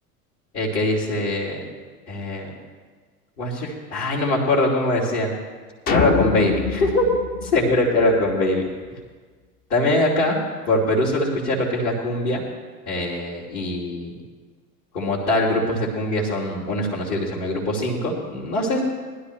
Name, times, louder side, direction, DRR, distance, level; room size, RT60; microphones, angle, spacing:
voice 1, 0.5-1.6 2.1-2.5 3.4-5.3 5.9-7.0 7.4-8.6 9.7-10.4 10.7-12.4 12.9-14.1 14.9-18.8, left 1 dB, 50° left, -6 dB, 2.8 m, -22 dB
sound 1, 5.9-8.3, left 5 dB, 20° left, 0.4 m, -25 dB
19.0 x 12.0 x 3.2 m, 1.5 s
figure-of-eight pair, 85°, 47 cm